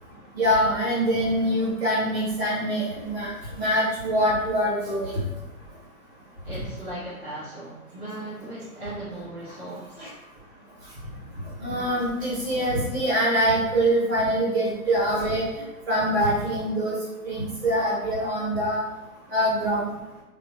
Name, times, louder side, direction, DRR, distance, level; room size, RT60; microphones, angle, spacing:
voice 1, 0.3-5.2 6.5-6.6 10.0-10.1 11.6-15.5 15.9-17.0 17.2-18.8 19.3-19.9, equal, 45° right, -6 dB, 1.5 m, -24 dB
voice 2, 6.4-10.1, right 1 dB, 10° right, -13 dB, 1.0 m, -37 dB
3.2 x 2.1 x 2.5 m, 1.0 s
figure-of-eight pair, 130°, 43 cm